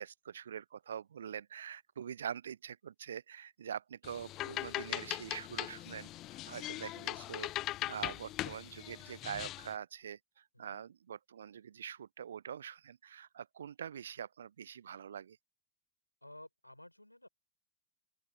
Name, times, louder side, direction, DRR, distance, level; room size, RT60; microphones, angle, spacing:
voice 1, 0.0-7.5 7.9-15.4, right 8 dB, 65° right, 0.6 m, -44 dB
sound 1, 4.0-9.7, left 16 dB, 35° left, 0.8 m, -40 dB
voice 2, 16.2-17.3, left 1 dB, 85° left, 6.6 m, -54 dB
open air
figure-of-eight pair, 90°, 0 cm